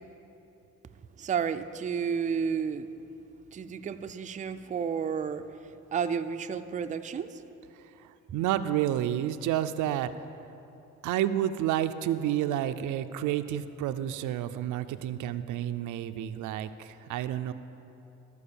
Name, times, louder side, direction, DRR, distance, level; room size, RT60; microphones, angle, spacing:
voice 1, 1.2-2.9 3.5-7.4, right 7 dB, 25° right, 9 dB, 0.4 m, -32 dB
voice 2, 7.7-10.3 11.0-17.5, right 11 dB, 85° right, 10 dB, 0.5 m, -30 dB
13.5 x 4.7 x 6.9 m, 3.0 s
cardioid pair, 90°, 30 cm